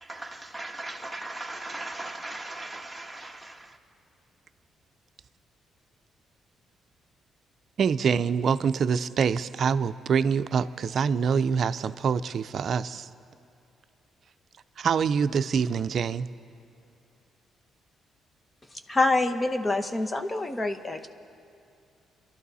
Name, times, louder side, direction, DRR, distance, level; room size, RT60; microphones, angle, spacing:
voice 1, 0.0-3.6, right 2 dB, 5° right, 1.4 m, -38 dB
voice 2, 7.8-13.1 14.8-16.3, right 6 dB, 55° right, 0.5 m, -25 dB
voice 3, 18.9-21.1, left 2 dB, 25° left, 1.0 m, -26 dB
27.5 x 12.0 x 4.2 m
cardioid pair, 90°, 0 cm